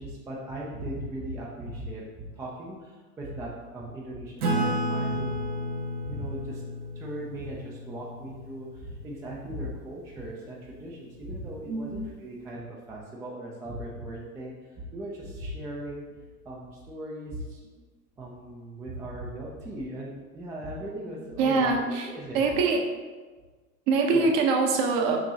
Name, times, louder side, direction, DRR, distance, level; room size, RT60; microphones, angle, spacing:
voice 1, 0.0-5.4 6.0-6.6 7.0-16.1 16.4-17.6 18.2-22.5 24.1-24.3, right 1 dB, 10° right, -3 dB, 0.3 m, -38 dB
Acoustic guitar / Strum, 4.4-9.4, equal, 85° right, 1.2 m, -32 dB
voice 2, 21.4-22.1 22.3-22.8 23.9-25.2, right 4 dB, 45° right, 2 dB, 0.8 m, -23 dB
6.2 x 3.0 x 2.8 m, 1.3 s
hypercardioid pair, 100°, 44 cm